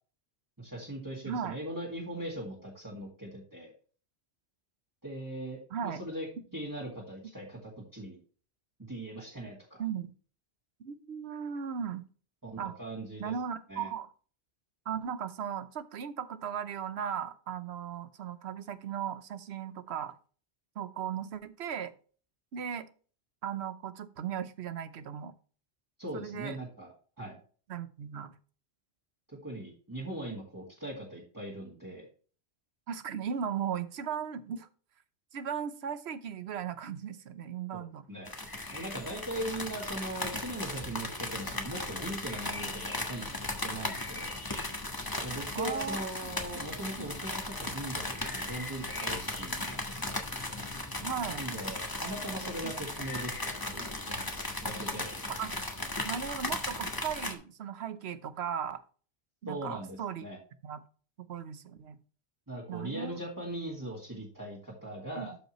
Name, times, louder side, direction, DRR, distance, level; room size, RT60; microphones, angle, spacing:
voice 1, 0.6-3.7 5.0-6.3 6.5-8.2 8.9-9.8 12.4-13.3 13.7-13.9 26.0-27.4 29.3-32.1 37.7-38.3 38.7-44.3 45.2-50.2 51.3-54.2 54.6-55.1 59.5-60.4 62.5-65.4, right 1 dB, 15° right, -5 dB, 2.1 m, -40 dB
voice 2, 1.2-1.6 5.7-6.0 9.8-10.1 10.8-12.0 12.6-12.7 13.2-14.1 14.9-20.1 20.8-21.9 22.5-22.9 23.4-25.3 26.1-26.6 27.7-28.3 32.9-34.7 35.3-38.1 45.5-46.1 47.0-47.1 51.0-51.4 52.6-52.7 55.3-55.5 56.0-58.8 59.4-60.2 60.6-60.8 61.3-62.0 62.7-63.2 65.2-65.4, right 8 dB, 70° right, 12 dB, 1.0 m, -37 dB
sound 1, 38.2-57.3, left 2 dB, 20° left, 1.3 m, -37 dB
12.0 x 5.3 x 3.1 m, 0.40 s
omnidirectional pair, 1.1 m